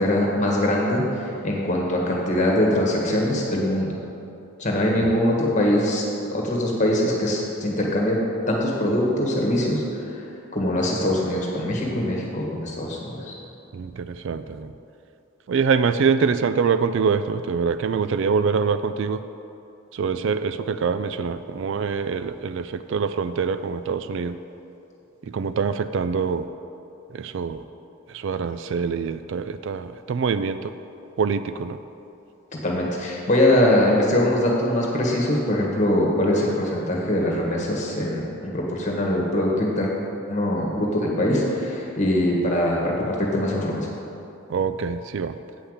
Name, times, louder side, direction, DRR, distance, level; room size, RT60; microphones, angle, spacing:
voice 1, 0.0-4.0 4.6-8.2 8.5-10.2 10.5-13.3 32.6-39.9 40.3-43.9, left 1 dB, 35° left, -2 dB, 1.6 m, -22 dB
voice 2, 13.7-14.7 15.5-19.2 19.9-24.4 25.2-26.5 27.1-27.6 28.1-30.8 31.2-31.8 44.5-45.4, right 5 dB, 55° right, 11 dB, 0.3 m, -25 dB
8.4 x 5.7 x 8.0 m, 2.8 s
head